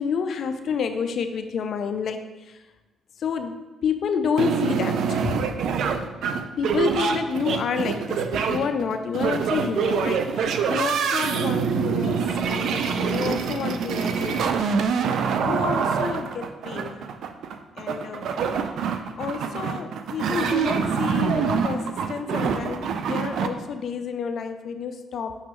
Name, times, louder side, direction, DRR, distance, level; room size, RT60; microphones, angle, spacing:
voice 1, 0.0-2.6 3.2-5.4 6.6-12.2 12.5-14.8 15.4-17.1 17.8-18.3 19.2-25.4, left 6 dB, 60° left, 8 dB, 0.5 m, -29 dB
sound 1, 4.4-23.5, right 6 dB, 75° right, 0.4 m, -25 dB
6.4 x 5.9 x 3.1 m, 1.1 s
cardioid pair, 90°, 0 cm